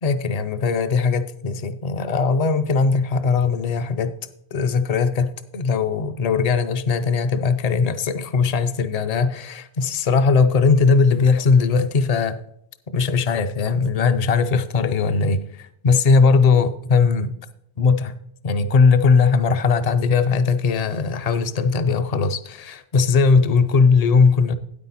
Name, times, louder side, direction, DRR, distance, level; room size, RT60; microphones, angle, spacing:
voice 1, 0.0-4.2 4.5-12.4 12.9-17.3 17.8-18.2 18.4-24.5, left 4 dB, 45° left, 11 dB, 0.6 m, -19 dB
9.5 x 8.4 x 4.1 m, 0.76 s
omnidirectional pair, 1.1 m